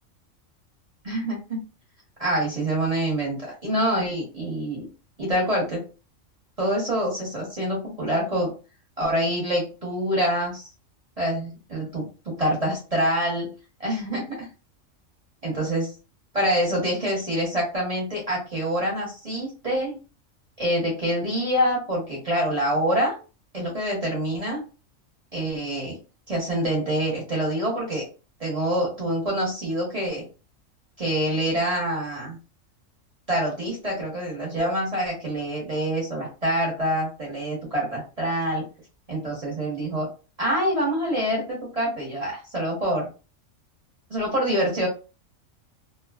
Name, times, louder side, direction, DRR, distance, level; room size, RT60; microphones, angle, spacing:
voice 1, 1.0-1.6 2.2-4.9 5.2-5.8 6.6-8.5 9.0-10.7 11.2-12.1 12.4-13.5 13.8-14.5 15.4-15.9 16.3-20.0 20.6-23.1 23.5-24.6 25.3-26.0 26.3-28.0 28.4-30.2 31.0-32.4 33.3-38.6 39.1-40.1 40.4-43.1 44.1-44.9, equal, 30° right, -4 dB, 1.0 m, -26 dB
2.7 x 2.3 x 2.3 m, 0.33 s
omnidirectional pair, 1.3 m